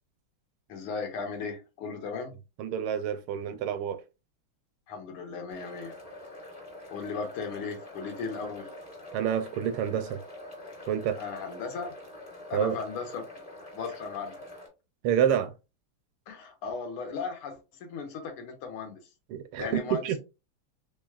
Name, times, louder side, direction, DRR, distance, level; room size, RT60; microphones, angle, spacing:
voice 1, 0.7-2.4 4.9-6.0 6.9-8.7 11.2-11.9 12.5-13.2 13.7-14.4 16.3-19.0 19.6-20.2, left 5 dB, 80° left, 1.8 m, -36 dB
voice 2, 2.6-4.0 9.1-10.2 10.9-11.2 12.5-12.8 15.0-15.5 19.3-19.7 20.0-20.2, right 9 dB, 80° right, 1.4 m, -28 dB
sound 1, 5.5-14.7, left 1 dB, 30° left, 0.7 m, -45 dB
3.9 x 3.2 x 2.3 m
omnidirectional pair, 2.4 m